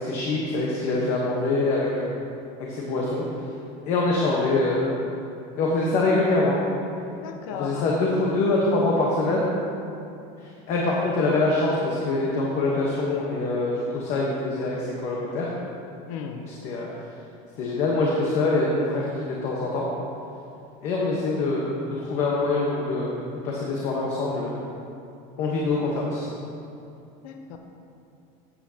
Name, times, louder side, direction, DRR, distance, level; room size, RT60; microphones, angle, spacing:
voice 1, 0.0-2.2 2.7-3.3 3.8-5.0 5.6-6.6 7.5-9.5 10.4-15.5 16.5-16.9 17.6-19.8 20.8-23.1 23.4-24.6 25.4-26.3, left 2 dB, 40° left, -3 dB, 1.1 m, -24 dB
voice 2, 7.2-7.9 16.1-16.4 27.2-27.6, left 7 dB, 70° left, 4 dB, 0.8 m, -35 dB
13.5 x 8.5 x 2.8 m, 2.6 s
cardioid pair, 180°, 19 cm